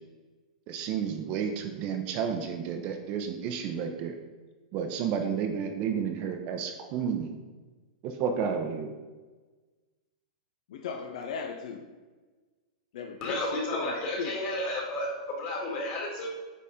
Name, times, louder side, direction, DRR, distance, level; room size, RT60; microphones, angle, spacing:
voice 1, 0.7-4.2 4.7-7.3 8.0-8.9, right 7 dB, 35° right, 5 dB, 0.7 m, -31 dB
voice 2, 10.7-11.9 12.9-14.4, left 6 dB, 60° left, 5 dB, 0.6 m, -38 dB
voice 3, 13.2-16.3, left 1 dB, 35° left, -2 dB, 2.1 m, -32 dB
8.5 x 4.1 x 3.7 m, 1.3 s
hypercardioid pair, 155°, 4 cm